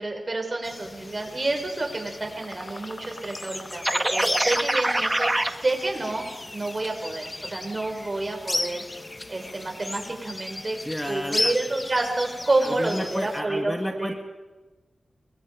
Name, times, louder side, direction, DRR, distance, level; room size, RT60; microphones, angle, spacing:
voice 1, 0.0-5.3 5.6-6.3 6.5-8.8 9.3-10.8 11.1-14.1, right 2 dB, 40° right, 3 dB, 6.3 m, -29 dB
sound 1, 0.6-13.4, left 2 dB, 30° left, 1.4 m, -35 dB
sound 2, 3.8-5.5, right 1 dB, 20° right, 1.5 m, -24 dB
voice 2, 10.8-11.5 12.6-14.2, equal, 10° left, 4 dB, 2.1 m, -31 dB
29.5 x 23.0 x 5.2 m, 1.2 s
cardioid pair, 60°, 0 cm